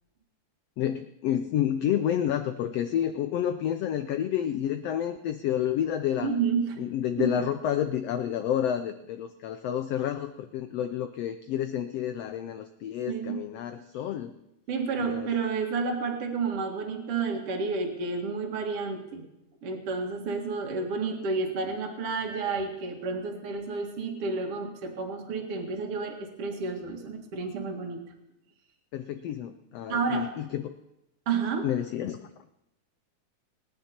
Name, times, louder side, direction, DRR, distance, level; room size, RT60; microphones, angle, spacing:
voice 1, 0.8-6.3 6.8-14.4 15.0-15.3 28.9-30.8 31.6-32.3, left 10 dB, 90° left, 9 dB, 1.4 m, -29 dB
voice 2, 6.2-6.8 7.2-7.5 13.1-13.4 14.7-19.2 19.6-28.0 29.9-30.3 31.3-31.7, right 4 dB, 50° right, 2 dB, 2.6 m, -30 dB
25.0 x 10.0 x 4.4 m, 0.90 s
omnidirectional pair, 3.6 m